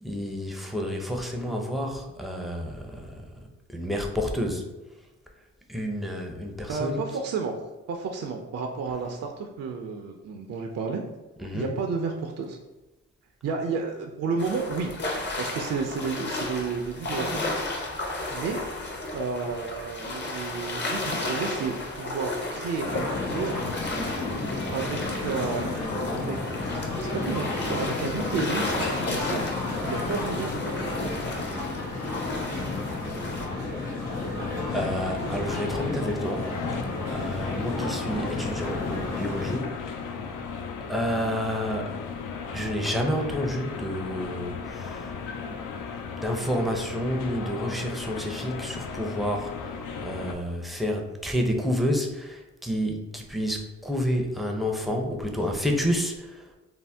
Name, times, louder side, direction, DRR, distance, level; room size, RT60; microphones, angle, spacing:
voice 1, 0.0-3.2 3.7-4.7 5.7-7.0 11.4-11.7 34.7-36.5 37.1-39.7 40.9-41.9 42.5-45.0 45.5-45.6 46.2-49.5 50.0-56.4, equal, ahead, 1 dB, 0.5 m, -29 dB
voice 2, 6.7-7.6 7.9-11.0 11.4-12.6 13.4-14.9 15.4-17.4 18.3-18.6 19.1-23.8 24.6-25.8 26.1-31.2, right 5 dB, 50° right, 2 dB, 0.4 m, -32 dB
sound 1, 14.4-33.5, left 2 dB, 35° left, 0.7 m, -33 dB
sound 2, 22.8-39.6, left 3 dB, 90° left, 1.1 m, -32 dB
Airport Baggage Conveyor with Background Voices, 34.1-50.3, left 5 dB, 70° left, 0.5 m, -37 dB
2.6 x 2.0 x 3.3 m, 1.1 s
supercardioid pair, 55°, 33 cm